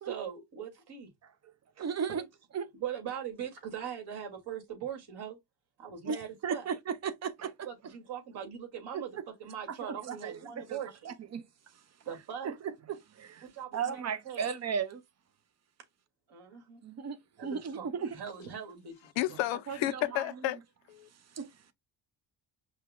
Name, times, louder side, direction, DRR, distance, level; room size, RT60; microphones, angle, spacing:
voice 1, 0.0-1.1 2.1-2.2 2.8-5.4 5.8-6.7 7.6-11.1 12.0-12.5 13.4-14.5 16.3-16.8 17.4-18.9, right 8 dB, 60° right, 2.6 m, -41 dB
voice 2, 1.8-2.2 2.5-2.7 6.1-6.2 6.4-7.5 8.9-9.2 9.9-10.8 11.0-11.5 12.4-13.5 13.7-15.0 16.8-18.2 19.7-20.2 21.4-21.5, right 6 dB, 35° right, 0.8 m, -35 dB
voice 3, 19.2-20.6 20.9-21.1, left 15 dB, 90° left, 0.8 m, -31 dB
5.4 x 2.4 x 3.6 m
cardioid pair, 120°, 44 cm